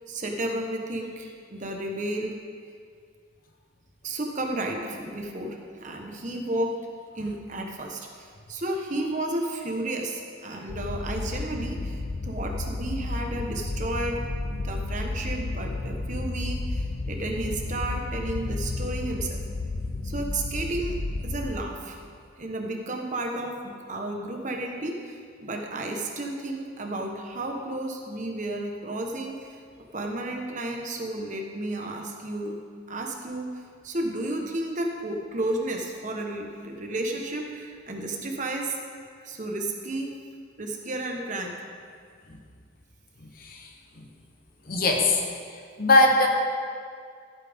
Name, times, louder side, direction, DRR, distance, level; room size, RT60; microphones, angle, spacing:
voice 1, 0.1-2.4 4.0-6.9 7.1-14.2 14.5-19.4 20.0-21.0 21.2-22.0 22.4-29.6 29.9-32.6 32.9-38.8 39.2-40.1 40.6-41.6, right 1 dB, 40° right, 2 dB, 1.2 m, -32 dB
sound 1, 10.7-21.5, left 2 dB, 80° left, 0.7 m, -32 dB
voice 2, 43.4-43.7 44.0-44.1 44.7-45.2 45.8-46.3, left 2 dB, 45° left, 2 dB, 1.0 m, -20 dB
15.0 x 8.7 x 3.6 m, 2.2 s
head